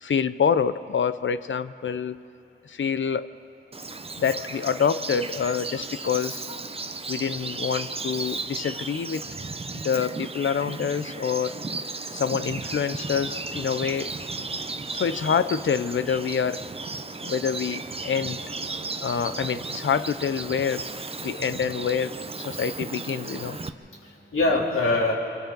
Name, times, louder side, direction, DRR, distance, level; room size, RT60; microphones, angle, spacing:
voice 1, 0.0-2.2 2.7-3.3 4.2-6.5 7.1-9.2 9.8-11.6 12.1-14.1 14.9-16.6 17.2-18.4 19.0-20.9 21.2-23.6, left 7 dB, 70° left, 13 dB, 0.6 m, -26 dB
Bird vocalization bird call bird song, 3.7-23.7, right 3 dB, 30° right, 0.6 m, -35 dB
voice 2, 18.7-19.4 24.0-25.1, left 2 dB, 85° left, -2 dB, 3.2 m, -25 dB
29.5 x 26.5 x 3.9 m, 2.6 s
wide cardioid pair, 125°, 21 cm